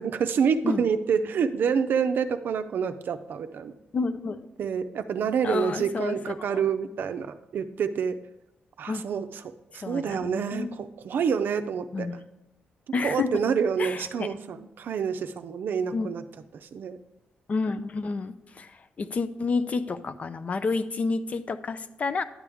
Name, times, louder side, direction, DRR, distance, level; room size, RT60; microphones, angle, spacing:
voice 1, 0.0-3.7 4.6-8.2 8.8-12.1 13.0-16.2 16.6-17.0, right 6 dB, 65° right, 9 dB, 0.5 m, -27 dB
voice 2, 3.9-4.4 5.4-6.6 8.9-9.0 9.8-10.8 11.9-12.2 12.9-13.3 13.8-14.3 15.9-16.1 17.5-22.2, left 4 dB, 40° left, 12 dB, 0.5 m, -30 dB
11.0 x 8.3 x 3.5 m, 0.92 s
wide cardioid pair, 135°, 4 cm